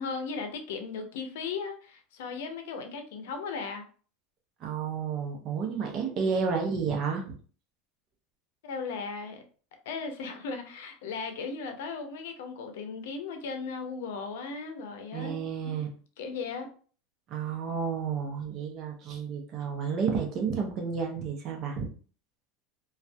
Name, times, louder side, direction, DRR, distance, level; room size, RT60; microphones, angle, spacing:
voice 1, 0.0-3.8 8.6-9.4 9.9-15.3 15.6-15.7 16.2-16.7, left 5 dB, 80° left, 6 dB, 0.5 m, -36 dB
voice 2, 4.6-7.3 15.1-15.9 17.3-21.9, right 6 dB, 45° right, 2 dB, 0.7 m, -31 dB
2.5 x 2.3 x 2.2 m, 0.41 s
supercardioid pair, 110°, 0 cm